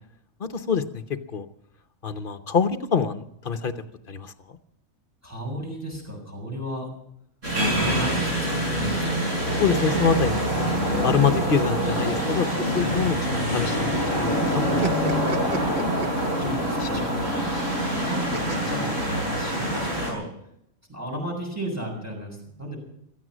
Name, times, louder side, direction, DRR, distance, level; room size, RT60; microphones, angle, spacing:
voice 1, 0.4-1.0 1.3-1.5 2.0-3.7 4.1-4.3 9.6-10.7 11.0-12.5 12.7-14.8 15.3-15.5 16.8-17.0, left 6 dB, 45° left, 10 dB, 0.9 m, -25 dB
voice 2, 5.2-6.9 7.5-9.2 12.8-13.1 16.4-17.4 18.0-20.3 20.9-22.8, right 1 dB, 10° right, 0 dB, 7.1 m, -34 dB
sound 1, 7.4-20.1, equal, 60° right, 6.9 m, -25 dB
sound 2, 12.6-14.2 14.5-16.7 18.3-19.8, right 2 dB, 35° right, 1.2 m, -33 dB
16.0 x 14.0 x 6.2 m, 0.73 s
omnidirectional pair, 1.4 m